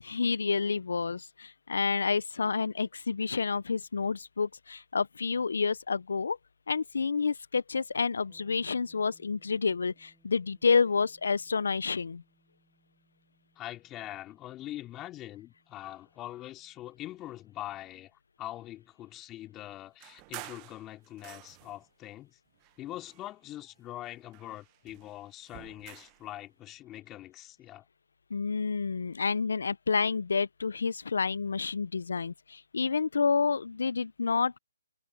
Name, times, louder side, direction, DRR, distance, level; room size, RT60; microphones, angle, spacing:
voice 1, 0.0-6.4 6.7-12.2 28.3-34.6, left 5 dB, 70° left, 0.7 m, -29 dB
sound 1, 8.3-18.1, right 2 dB, 5° right, 7.4 m, -70 dB
voice 2, 13.6-22.4 22.8-27.8, left 14 dB, 15° left, 3.3 m, -43 dB
sound 2, 20.0-21.9 22.6-23.7 24.0-26.3, right 26 dB, 25° right, 1.4 m, -49 dB
hypercardioid pair, 150°, 0 cm